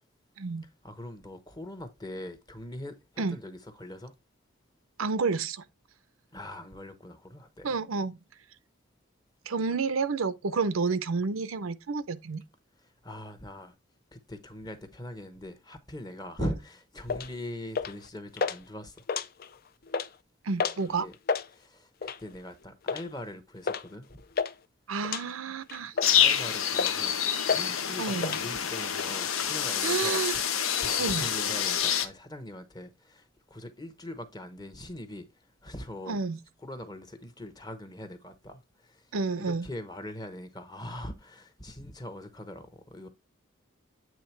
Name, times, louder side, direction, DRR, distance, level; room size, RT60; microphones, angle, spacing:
voice 1, 0.8-3.0 3.3-4.1 6.3-7.7 12.8-13.7 14.1-19.0 20.9-21.2 21.5-24.2 26.1-27.2 27.5-30.2 30.8-35.3 35.6-36.2 36.6-39.0 39.4-43.1, left 1 dB, 20° left, 0.9 m, -41 dB
voice 2, 5.0-5.6 7.6-8.2 9.5-12.4 16.4-16.5 20.4-21.1 24.9-25.9 28.0-28.4 29.8-30.4 31.0-31.3 36.1-36.4 39.1-39.7, right 4 dB, 85° right, 0.6 m, -30 dB
sound 1, 17.1-17.3 17.8-18.1 18.4-18.6 19.0-19.6 19.9-20.1 20.6-20.8 21.1-21.5 22.0-22.3 22.9-23.1 23.7-23.9 24.1-24.5 25.0-25.2 25.7-26.3 26.7-27.1 27.5-27.7 27.9-28.4, left 5 dB, 45° left, 0.4 m, -30 dB
sound 2, 26.0-32.1, left 8 dB, 90° left, 0.9 m, -27 dB
8.6 x 3.3 x 4.5 m
head